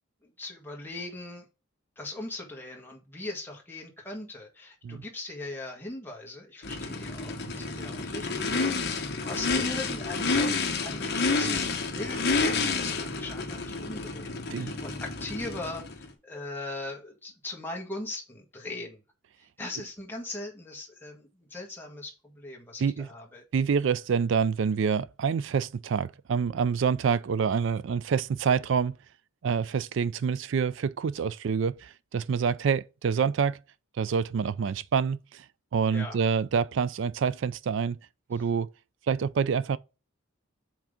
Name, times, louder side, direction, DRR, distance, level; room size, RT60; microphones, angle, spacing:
voice 1, 0.2-1.4 2.0-19.0 19.4-23.4 35.9-36.2 38.3-38.5, left 2 dB, 10° left, 1.6 m, -40 dB
Race car auto racing / Idling / Accelerating revving vroom, 6.6-16.1, left 4 dB, 50° left, 1.1 m, -30 dB
voice 2, 23.5-29.0 29.4-33.6 34.0-35.4 35.7-38.0 38.3-38.7 39.1-39.8, right 6 dB, 60° right, 0.3 m, -27 dB
5.9 x 3.8 x 5.0 m
head